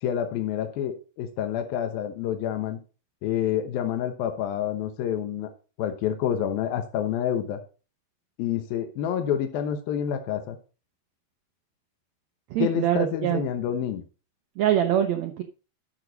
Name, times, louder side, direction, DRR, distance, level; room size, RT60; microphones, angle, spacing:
voice 1, 0.0-2.8 3.2-5.5 5.8-7.6 8.4-10.6 12.6-14.0, left 9 dB, 80° left, 7 dB, 2.8 m, -28 dB
voice 2, 12.5-13.4 14.6-15.4, right 11 dB, 85° right, 6 dB, 1.5 m, -24 dB
12.0 x 6.2 x 3.9 m, 0.34 s
omnidirectional pair, 4.2 m